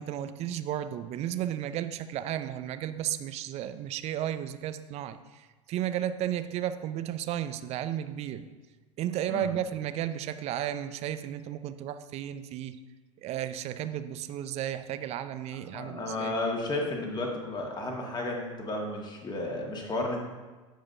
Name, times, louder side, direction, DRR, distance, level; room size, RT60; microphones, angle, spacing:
voice 1, 0.0-8.5 9.0-12.8 13.2-16.3, right 11 dB, 40° right, 11 dB, 0.5 m, -33 dB
voice 2, 15.7-20.2, left 2 dB, 25° left, 0 dB, 1.8 m, -33 dB
15.0 x 5.1 x 2.7 m, 1.3 s
hypercardioid pair, 85°, 17 cm